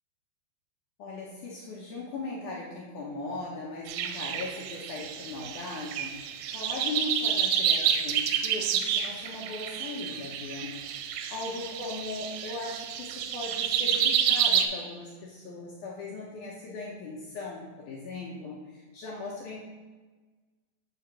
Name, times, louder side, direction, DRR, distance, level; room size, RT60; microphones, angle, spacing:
voice 1, 1.0-19.6, left 3 dB, 75° left, -4 dB, 1.8 m, -38 dB
sound 1, 3.9-14.7, right 8 dB, 85° right, 2.4 m, -29 dB
8.4 x 3.5 x 6.0 m, 1.3 s
omnidirectional pair, 4.8 m